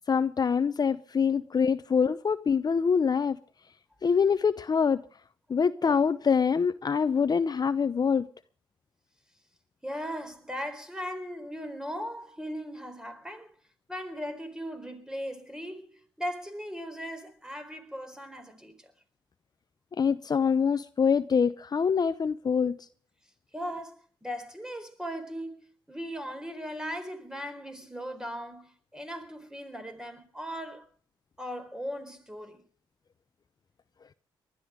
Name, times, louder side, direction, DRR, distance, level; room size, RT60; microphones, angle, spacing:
voice 1, 0.1-3.4 4.0-5.0 5.5-8.3 20.0-22.8, left 6 dB, 45° left, 0.7 m, -25 dB
voice 2, 9.8-13.5 13.9-18.9 23.5-30.9 31.4-32.6, equal, 5° right, 4.4 m, -38 dB
20.0 x 12.5 x 5.1 m
supercardioid pair, 60°, 10 cm